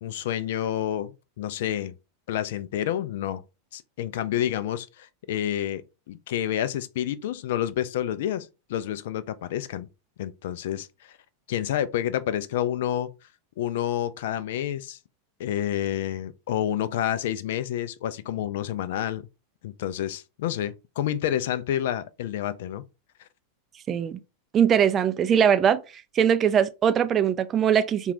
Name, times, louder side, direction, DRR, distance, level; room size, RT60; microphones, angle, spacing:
voice 1, 0.0-1.9 2.3-3.4 3.7-9.9 10.2-10.9 11.5-13.1 13.6-15.0 15.4-19.3 19.6-22.8, left 11 dB, 55° left, 0.3 m, -29 dB
voice 2, 23.9-24.2 24.5-25.8 26.1-28.1, right 8 dB, 25° right, 0.3 m, -21 dB
3.8 x 2.3 x 3.0 m
figure-of-eight pair, 90°, 0 cm